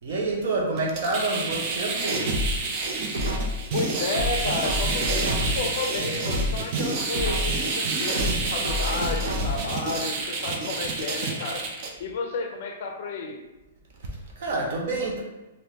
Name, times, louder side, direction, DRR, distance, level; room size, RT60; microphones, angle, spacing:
voice 1, 0.0-2.3 14.0-15.2, right 2 dB, 45° right, -1 dB, 0.8 m, -28 dB
sound 1, 0.8-11.9, right 4 dB, 25° right, 0.4 m, -29 dB
sound 2, 2.3-3.7 4.1-5.8 6.1-7.7 8.1-9.8 10.1-10.2, left 1 dB, 80° right, 0.9 m, -29 dB
voice 2, 3.7-11.7 12.0-13.4, left 4 dB, 45° left, 4 dB, 0.5 m, -32 dB
3.5 x 2.6 x 2.9 m, 1.1 s
hypercardioid pair, 175°, 0 cm